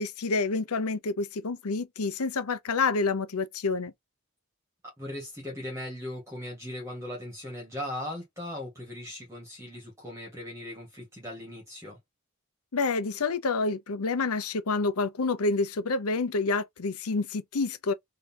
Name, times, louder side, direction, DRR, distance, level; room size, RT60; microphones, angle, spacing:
voice 1, 0.0-3.9 12.7-17.9, left 3 dB, 90° left, 0.7 m, -28 dB
voice 2, 5.0-12.0, left 1 dB, 15° right, 1.8 m, -38 dB
3.9 x 3.2 x 2.9 m
head